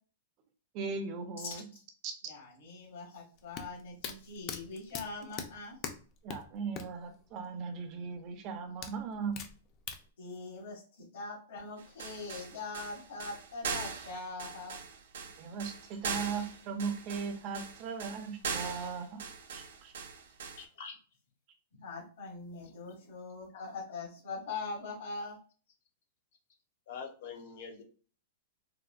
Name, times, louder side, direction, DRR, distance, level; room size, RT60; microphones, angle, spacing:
voice 1, 0.7-1.6 6.2-9.4 15.4-19.2 19.5-19.9, right 5 dB, 35° right, 7 dB, 0.6 m, -38 dB
voice 2, 2.2-5.8 10.2-14.8 21.8-25.4, left 3 dB, 90° left, -7 dB, 1.5 m, -42 dB
sound 1, 3.4-7.0 7.3-7.4 8.8-10.0, left 7 dB, 30° left, 0.4 m, -40 dB
sound 2, 11.8-20.6, right 6 dB, 80° right, 0.5 m, -40 dB
voice 3, 20.6-20.9 21.7-21.8 22.6-23.2 23.5-23.7 26.9-27.8, left 6 dB, 65° left, 1 dB, 0.9 m, -46 dB
3.6 x 2.3 x 2.2 m, 0.39 s
supercardioid pair, 160°, 0 cm